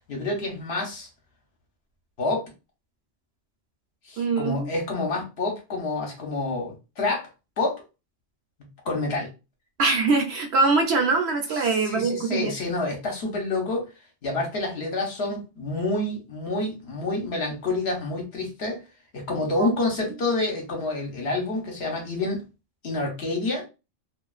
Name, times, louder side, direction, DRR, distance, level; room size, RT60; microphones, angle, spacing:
voice 1, 0.1-1.1 2.2-2.4 4.1-7.3 7.6-7.8 8.8-9.3 11.8-13.8 14.2-18.8 19.1-22.4 22.8-23.6, left 2 dB, 60° left, 1.0 m, -28 dB
voice 2, 4.2-4.7 9.8-12.5 19.6-19.8, right 3 dB, 65° right, 0.8 m, -23 dB
2.4 x 2.3 x 2.3 m
omnidirectional pair, 1.3 m